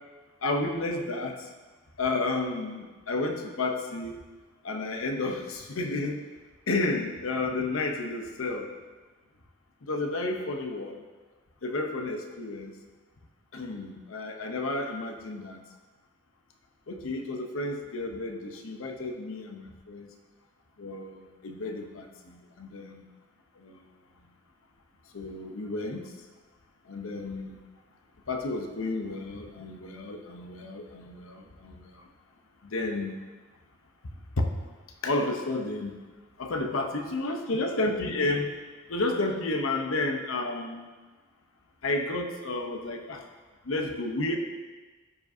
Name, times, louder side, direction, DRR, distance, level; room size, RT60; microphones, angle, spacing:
voice 1, 0.4-1.5 2.0-4.2 4.6-6.2 6.7-8.7 9.8-11.0 11.6-12.7 13.5-15.6 16.9-20.1 20.8-23.0 23.6-23.8 25.1-26.1 26.9-27.6 28.3-32.0 32.6-33.1 34.4-34.5 35.0-36.0 36.4-38.5 38.9-40.9 41.8-43.2 43.6-44.4, left 2 dB, 75° left, 4 dB, 0.8 m, -31 dB
14.0 x 4.9 x 2.7 m, 1.3 s
head